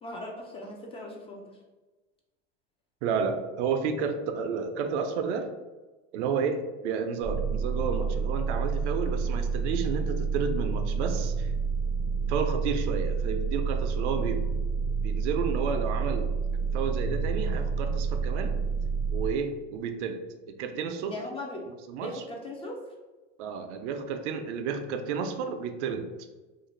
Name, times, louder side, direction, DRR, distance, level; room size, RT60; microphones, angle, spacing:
voice 1, 0.0-1.6 21.1-21.7 22.0-22.8, left 1 dB, 15° left, -1 dB, 0.3 m, -39 dB
voice 2, 3.0-5.5 6.1-11.5 12.3-14.5 15.0-16.3 16.7-18.6 19.1-20.2 20.5-21.1 21.9-22.2 23.4-26.1, right 6 dB, 75° right, 7 dB, 0.5 m, -31 dB
sound 1, 7.2-19.3, right 5 dB, 60° left, 0.7 m, -29 dB
2.4 x 2.1 x 3.1 m, 1.2 s
supercardioid pair, 105°, 35 cm